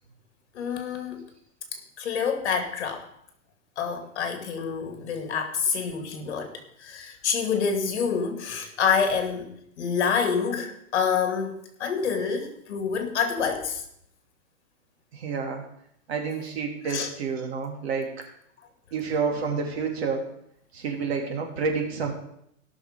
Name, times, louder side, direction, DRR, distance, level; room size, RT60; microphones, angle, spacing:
voice 1, 0.5-1.2 1.7-3.1 3.8-13.8 16.9-17.1, left 6 dB, 55° left, 6 dB, 2.5 m, -27 dB
voice 2, 15.1-15.6 16.1-18.2 18.9-20.2 20.7-22.1, right 5 dB, 50° right, 2 dB, 2.8 m, -29 dB
17.0 x 6.4 x 5.2 m, 0.74 s
hypercardioid pair, 175°, 39 cm